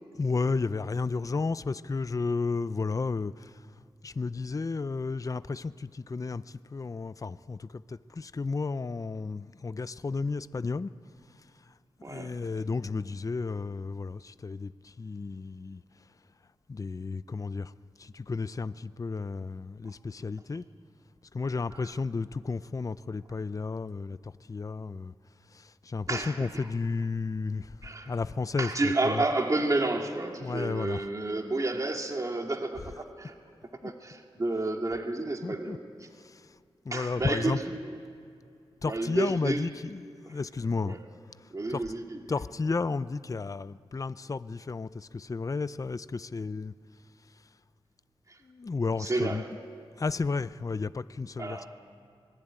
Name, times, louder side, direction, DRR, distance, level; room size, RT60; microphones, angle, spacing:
voice 1, 0.1-3.7 4.0-10.9 11.3-11.7 12.0-15.8 16.7-17.7 18.0-20.6 21.3-25.1 25.5-29.3 30.4-31.1 32.8-33.0 33.8-33.9 35.4-35.8 36.1-36.6 36.8-37.8 38.8-41.0 41.3-41.8 42.3-46.7 47.3-47.4 48.4-49.6 50.0-51.6, left 4 dB, 35° left, 15 dB, 0.5 m, -33 dB
voice 2, 12.0-12.4 26.1-26.4 27.8-28.1 28.6-33.3 33.8-36.1 36.9-37.9 38.8-39.6 40.2-40.3 40.8-41.0 41.5-42.2 48.3-48.4 49.0-49.4 51.4-51.7, right 2 dB, 35° right, 3 dB, 2.2 m, -30 dB
25.0 x 19.5 x 9.0 m, 2.4 s
wide cardioid pair, 85°, 10 cm